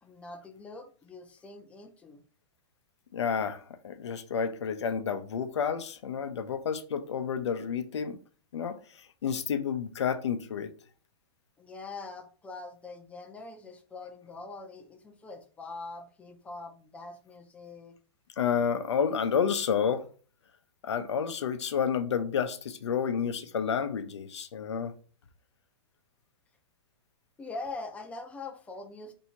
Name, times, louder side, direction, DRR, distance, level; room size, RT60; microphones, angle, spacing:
voice 1, 0.0-2.2 11.6-18.0 27.4-29.1, left 3 dB, 10° left, 0.5 m, -43 dB
voice 2, 3.1-8.2 8.5-8.8 9.2-10.7 18.4-20.0 20.8-24.9, left 7 dB, 90° left, 0.6 m, -30 dB
2.7 x 2.6 x 4.3 m
hypercardioid pair, 135°, 14 cm